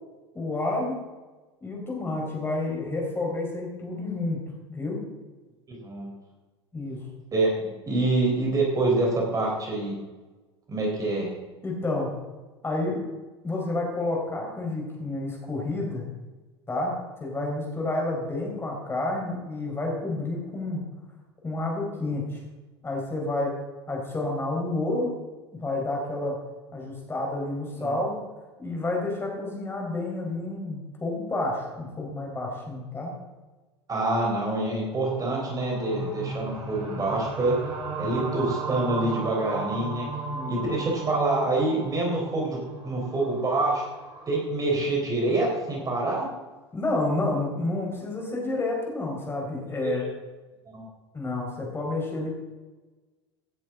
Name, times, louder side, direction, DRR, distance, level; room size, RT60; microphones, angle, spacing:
voice 1, 0.3-1.0 1.6-4.4 4.7-5.0 6.7-7.1 11.6-12.2 12.6-13.0 13.4-16.0 16.7-16.9 17.2-20.8 21.4-22.4 22.8-23.6 23.9-25.1 25.5-26.4 26.7-28.2 28.6-33.1 40.3-40.6 46.7-50.0 51.1-52.3, left 2 dB, 15° left, -1 dB, 4.6 m, -29 dB
voice 2, 5.7-6.1 7.3-9.9 10.7-11.3 27.8-27.9 33.9-37.5 38.0-40.1 40.5-43.8 44.3-46.3 50.7-50.8, right 2 dB, 25° right, -2 dB, 4.3 m, -26 dB
sound 1, 35.2-44.4, right 4 dB, 45° right, 4.4 m, -35 dB
17.0 x 10.5 x 3.9 m, 1.2 s
figure-of-eight pair, 75°, 15 cm